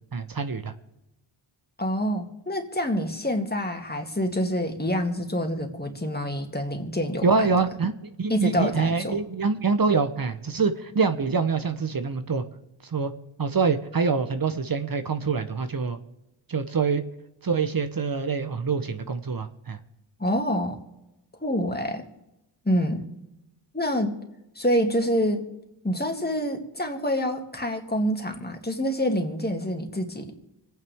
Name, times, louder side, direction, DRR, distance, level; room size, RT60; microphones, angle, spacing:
voice 1, 0.1-0.7 7.2-12.4 12.9-13.1 13.4-16.0 16.5-17.0 17.4-19.8, right 5 dB, 45° right, 9 dB, 1.0 m, -25 dB
voice 2, 1.8-7.5 8.3-9.2 20.2-20.8 21.4-22.0 22.7-23.0 23.7-24.2 24.6-25.4 25.8-30.3, equal, 20° left, 3 dB, 2.3 m, -27 dB
26.0 x 9.2 x 3.6 m, 0.94 s
cardioid pair, 50°, 49 cm